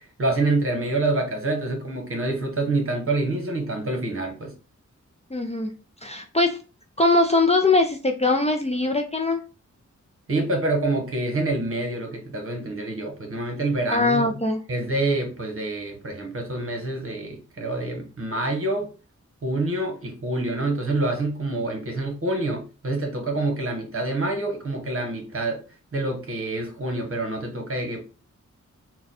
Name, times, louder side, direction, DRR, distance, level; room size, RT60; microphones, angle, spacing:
voice 1, 0.0-4.5 10.3-14.3 14.7-18.9 19.4-25.6 25.9-28.0, right 2 dB, 45° right, 1.2 m, -27 dB
voice 2, 5.3-5.7 6.0-6.6 7.0-9.4 13.9-14.6, left 2 dB, 20° left, 0.5 m, -21 dB
3.9 x 2.3 x 4.0 m
wide cardioid pair, 95°, 30 cm